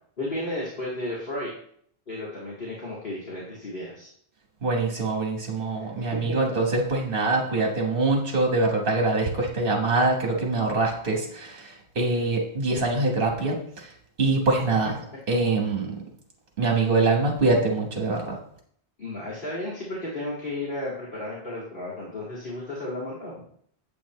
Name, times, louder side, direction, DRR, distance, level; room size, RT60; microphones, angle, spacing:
voice 1, 0.2-1.5 2.1-4.1 5.7-6.5 19.0-23.3, left 1 dB, 55° left, -8 dB, 2.4 m, -33 dB
voice 2, 4.6-13.9 14.2-15.0 15.3-16.0 16.6-18.4, right 3 dB, 60° right, 1 dB, 1.5 m, -24 dB
8.9 x 8.3 x 3.1 m, 0.64 s
omnidirectional pair, 1.0 m